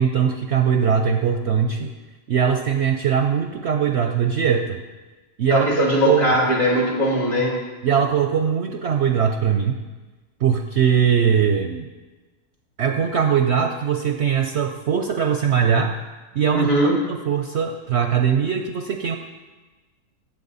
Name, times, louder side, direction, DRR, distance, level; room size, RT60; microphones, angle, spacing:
voice 1, 0.0-1.9 2.3-4.8 5.4-6.3 7.8-9.8 10.4-11.9 12.8-15.9 16.3-19.2, right 7 dB, 60° right, 5 dB, 0.7 m, -21 dB
voice 2, 5.5-7.6 16.5-16.9, equal, 60° left, -3 dB, 3.2 m, -20 dB
15.0 x 7.6 x 4.1 m, 1.2 s
omnidirectional pair, 1.6 m